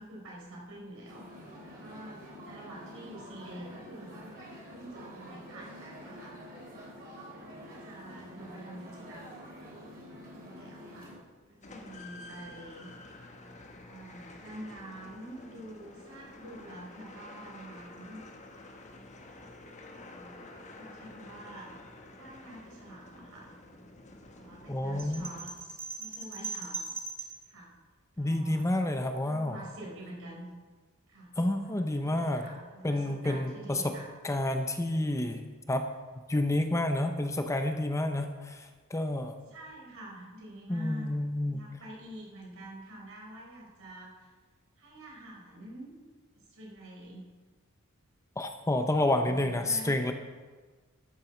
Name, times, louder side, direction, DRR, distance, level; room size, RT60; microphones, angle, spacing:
voice 1, 0.0-6.4 7.4-9.4 10.4-11.1 11.5-12.9 13.9-18.2 19.9-21.7 22.1-23.5 24.3-27.7 28.1-28.7 29.2-30.5 31.1-31.3 31.6-34.1 39.4-41.1 41.5-44.3 44.8-46.1 46.3-47.3 48.9-50.0, right 1 dB, 70° right, -3 dB, 4.3 m, -47 dB
sound 1, 1.0-11.2, equal, 45° right, 3.1 m, -47 dB
sound 2, 11.6-25.9, left 2 dB, 35° left, 1.2 m, -50 dB
voice 2, 24.7-25.3 28.2-29.6 31.4-32.4 32.8-34.0 34.2-35.9 36.3-39.4 40.7-41.7 48.4-50.1, left 1 dB, 15° left, 6 dB, 0.7 m, -29 dB
sound 3, 25.0-27.5, right 4 dB, 15° right, 1.7 m, -39 dB
13.0 x 7.5 x 6.1 m, 1.4 s
head